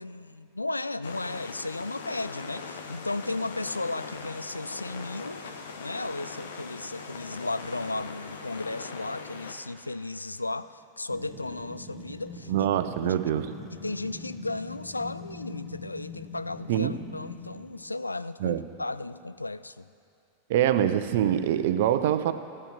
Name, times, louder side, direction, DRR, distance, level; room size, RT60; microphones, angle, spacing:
voice 1, 0.0-5.4 5.8-12.7 13.0-13.2 13.7-19.9, left 2 dB, 80° left, 15 dB, 0.3 m, -35 dB
sound 1, 1.0-9.5, left 5 dB, 65° left, 1.1 m, -41 dB
sound 2, 11.1-17.9, left 3 dB, 20° left, 2.0 m, -43 dB
voice 2, 12.5-13.5 16.7-17.0 18.4-18.6 20.5-22.3, right 11 dB, 55° right, 11 dB, 0.7 m, -24 dB
14.5 x 9.6 x 7.0 m, 2.4 s
figure-of-eight pair, 90°, 0 cm